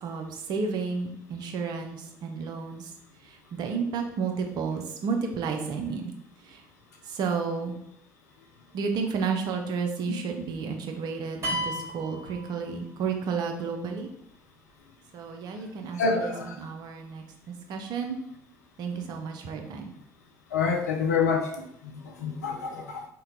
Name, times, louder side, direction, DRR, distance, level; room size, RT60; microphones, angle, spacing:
voice 1, 0.0-2.9 3.2-6.1 6.4-6.6 7.0-7.8 8.7-14.1 15.1-18.2 18.8-19.9, right 5 dB, 50° right, 4 dB, 0.5 m, -32 dB
sound 1, 11.4-13.1, equal, 35° right, 1.2 m, -33 dB
voice 2, 16.0-16.5 20.5-21.5 21.8-23.1, left 5 dB, 80° left, 1 dB, 0.5 m, -27 dB
2.7 x 2.2 x 3.7 m, 0.73 s
figure-of-eight pair, 55°, 9 cm